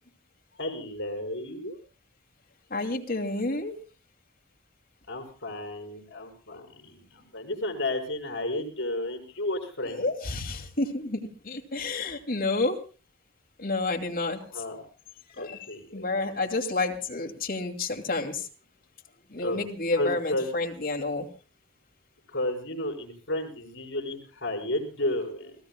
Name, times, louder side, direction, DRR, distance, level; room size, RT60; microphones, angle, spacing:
voice 1, 0.6-1.8 5.1-10.0 14.5-14.9 15.4-16.1 19.4-19.6 20.0-20.5 22.3-25.5, left 1 dB, 65° left, 3 dB, 5.1 m, -32 dB
voice 2, 2.7-3.7 9.8-12.8 13.6-14.4 15.4-15.6 15.9-18.5 19.3-21.3, left 2 dB, 50° left, 4 dB, 2.4 m, -30 dB
29.5 x 17.5 x 2.2 m, 0.34 s
head